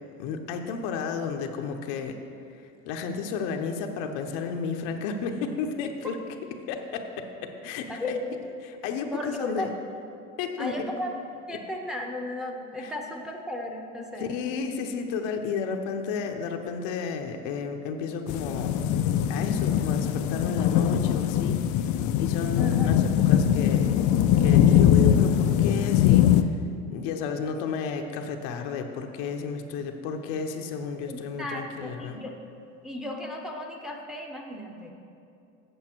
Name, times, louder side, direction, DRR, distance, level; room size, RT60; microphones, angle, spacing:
voice 1, 0.2-2.2 2.8-6.2 6.7-8.2 8.8-9.7 10.4-10.7 12.8-12.9 14.2-18.7 19.3-21.6 22.2-23.9 24.4-26.3 26.9-32.2, left 5 dB, 70° left, 4 dB, 0.9 m, -32 dB
voice 2, 9.1-9.7 10.6-11.1 11.5-14.4 22.6-23.1 31.1-32.3 32.8-34.9, left 1 dB, ahead, 1 dB, 0.8 m, -35 dB
sound 1, 18.3-26.4, left 10 dB, 50° left, 0.5 m, -22 dB
8.2 x 7.1 x 4.5 m, 2.5 s
supercardioid pair, 105°, 38 cm